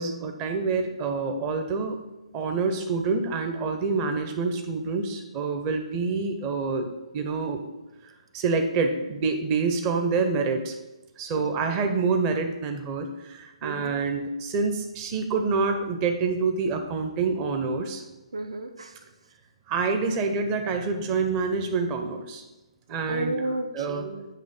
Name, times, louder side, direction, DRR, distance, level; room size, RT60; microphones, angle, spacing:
voice 1, 0.0-2.0 2.3-6.9 7.1-7.6 8.3-10.7 11.2-18.0 19.7-22.4 22.9-23.4 23.7-24.0, right 4 dB, 25° right, 5 dB, 0.6 m, -27 dB
voice 2, 13.6-13.9 18.3-19.0 23.1-24.3, right 2 dB, 65° right, 7 dB, 0.7 m, -32 dB
8.5 x 3.1 x 5.3 m, 1.1 s
figure-of-eight pair, 135°, 3 cm